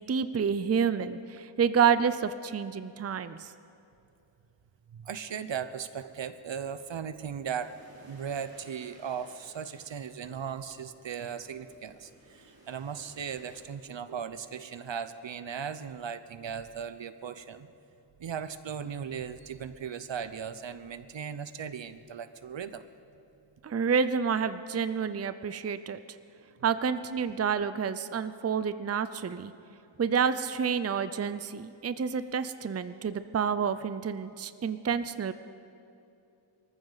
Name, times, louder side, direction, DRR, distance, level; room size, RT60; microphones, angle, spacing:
voice 1, 0.1-3.5 23.6-26.0 26.6-29.5 30.0-35.3, right 6 dB, 35° right, 13 dB, 0.5 m, -29 dB
voice 2, 4.9-7.8 8.0-17.7 18.2-22.9, right 7 dB, 70° right, 12 dB, 0.8 m, -37 dB
sound 1, 7.6-13.7, right 1 dB, 50° right, 3.1 m, -58 dB
24.5 x 14.5 x 4.0 m, 2.6 s
wide cardioid pair, 85°, 47 cm